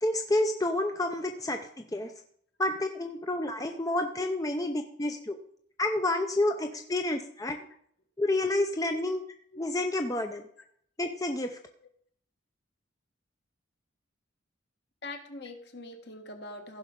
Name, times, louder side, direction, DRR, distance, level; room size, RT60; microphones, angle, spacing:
voice 1, 0.0-1.6 1.9-2.1 2.6-5.4 5.8-7.6 8.2-9.2 9.6-10.4 11.0-11.6, left 1 dB, 15° left, 5 dB, 0.6 m, -29 dB
voice 2, 8.8-9.1 9.5-9.6 10.6-10.7 15.0-16.8, left 2 dB, 55° left, 5 dB, 1.5 m, -43 dB
15.5 x 6.1 x 5.3 m, 0.64 s
head